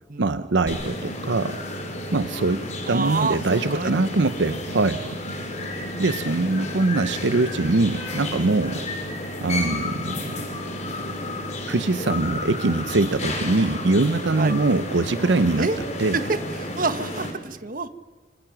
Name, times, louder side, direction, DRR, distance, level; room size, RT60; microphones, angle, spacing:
voice 1, 0.2-1.6 2.1-2.6 2.9-5.2 5.6-8.8 9.4-10.4 11.7-15.7 16.0-16.2, right 3 dB, 75° right, 12 dB, 0.7 m, -23 dB
sound 1, 0.7-17.3, left 1 dB, 40° left, 3.9 m, -31 dB
voice 2, 2.9-4.1 4.5-4.9 8.7-8.9 12.4-12.5 14.4-14.6 15.6-15.8 16.1-17.9, right 3 dB, 45° right, 11 dB, 1.2 m, -28 dB
26.5 x 25.0 x 6.0 m, 1.3 s
head